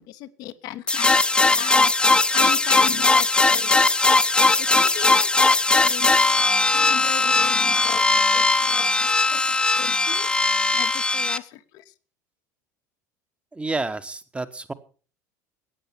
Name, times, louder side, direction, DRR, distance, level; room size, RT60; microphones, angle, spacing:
voice 1, 0.0-1.9 2.3-4.0 4.6-6.4 6.7-10.3 10.7-11.9, left 14 dB, 50° left, 11 dB, 0.9 m, -37 dB
sound 1, 0.9-11.4, left 3 dB, 10° left, 0.7 m, -19 dB
voice 2, 13.5-14.7, right 3 dB, 10° right, 13 dB, 1.2 m, -29 dB
16.0 x 9.2 x 5.8 m, 0.40 s
figure-of-eight pair, 70°, 9 cm